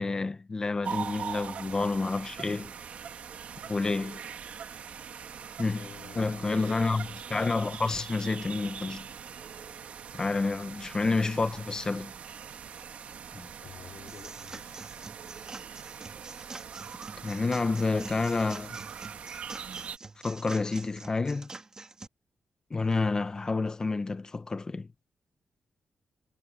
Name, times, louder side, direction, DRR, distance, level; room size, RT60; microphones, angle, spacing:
voice 1, 0.0-2.7 3.7-4.2 5.6-5.8 6.2-9.1 10.1-12.1 13.3-13.5 17.2-18.8 20.2-21.5 22.7-24.9, left 3 dB, 30° left, 1.1 m, -29 dB
sound 1, 0.8-20.0, right 7 dB, 70° right, 2.1 m, -42 dB
voice 2, 5.7-6.9 13.6-15.2, left 8 dB, 70° left, 5.0 m, -50 dB
sound 2, 14.1-22.1, right 3 dB, 30° right, 2.9 m, -46 dB
cardioid pair, 100°, 2 cm